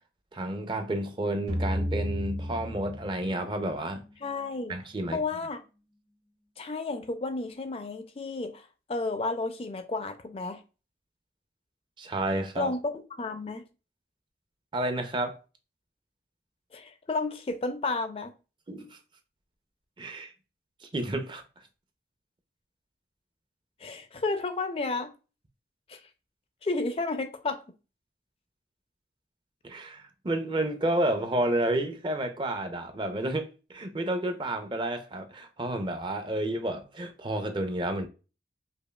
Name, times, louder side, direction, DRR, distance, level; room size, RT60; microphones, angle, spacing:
voice 1, 0.3-4.0 4.7-5.2 12.0-12.7 14.7-15.4 18.7-19.0 20.0-20.3 20.8-21.4 29.6-38.1, right 1 dB, 25° right, 0.5 m, -30 dB
sound 1, 1.5-4.4, equal, 55° right, 1.3 m, -33 dB
voice 2, 4.2-4.8 5.1-5.6 6.6-10.6 12.6-13.7 16.7-18.3 23.8-25.1 25.9-26.0 26.6-27.6, left 3 dB, 30° left, 0.4 m, -32 dB
5.2 x 2.3 x 2.2 m
head